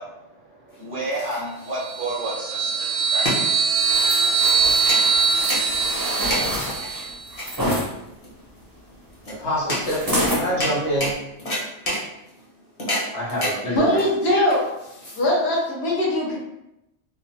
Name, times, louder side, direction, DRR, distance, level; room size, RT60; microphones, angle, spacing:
voice 1, 0.0-4.0, right 2 dB, 50° right, 0.8 m, -32 dB
sound 1, 0.7-15.6, left 1 dB, 35° left, 0.8 m, -31 dB
sound 2, 1.8-7.2, right 5 dB, 85° right, 0.9 m, -22 dB
sound 3, 3.9-7.9 9.8-10.5 11.0-11.1, equal, 25° right, 0.6 m, -27 dB
voice 2, 9.3-11.1 13.1-13.8, equal, 85° left, 1.3 m, -26 dB
voice 3, 13.8-14.7 15.2-16.4, left 1 dB, 65° left, 1.1 m, -21 dB
3.1 x 2.0 x 2.7 m
omnidirectional pair, 1.2 m